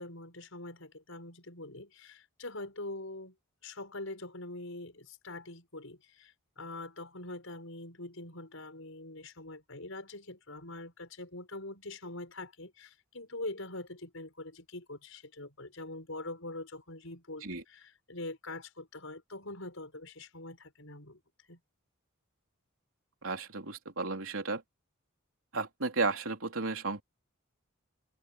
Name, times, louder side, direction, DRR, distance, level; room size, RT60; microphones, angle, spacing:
voice 1, 0.0-3.3 3.6-21.2 21.5-21.6, left 2 dB, 65° left, 7.5 m, -44 dB
voice 2, 23.2-24.6 25.5-27.0, right 3 dB, 70° right, 3.7 m, -33 dB
head